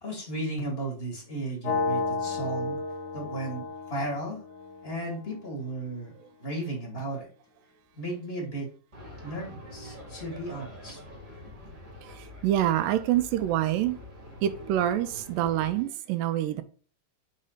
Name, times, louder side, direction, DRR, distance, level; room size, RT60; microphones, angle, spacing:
voice 1, 0.0-2.8 3.1-4.4 4.8-6.1 6.4-7.3 7.9-8.7 9.2-11.0, right 1 dB, 25° left, 1.5 m, -35 dB
sound 1, 1.6-5.6, left 4 dB, 70° left, 2.1 m, -32 dB
sound 2, 8.9-15.8, left 1 dB, 25° right, 1.3 m, -46 dB
voice 2, 12.4-14.0 14.4-16.6, right 12 dB, 80° right, 2.3 m, -26 dB
5.6 x 4.0 x 5.0 m
omnidirectional pair, 3.9 m